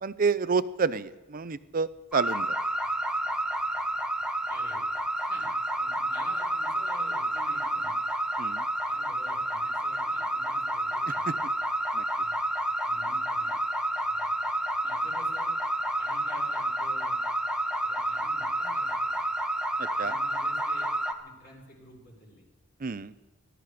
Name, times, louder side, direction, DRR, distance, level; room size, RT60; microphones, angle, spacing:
voice 1, 0.0-2.5 8.4-8.6 11.3-11.4 11.9-12.0 19.8-20.1 22.8-23.1, right 5 dB, 40° right, 15 dB, 0.5 m, -29 dB
sound 1, 2.1-21.1, right 1 dB, 5° right, 0.9 m, -30 dB
voice 2, 4.5-4.9 5.2-5.5 5.8-8.0 8.9-11.4 12.1-12.4 12.8-13.5 14.1-14.4 14.8-15.5 16.0-17.2 17.8-19.3 19.9-20.9 21.2-22.4, left 1 dB, 50° left, -4 dB, 5.4 m, -50 dB
19.5 x 12.5 x 5.0 m, 1.2 s
head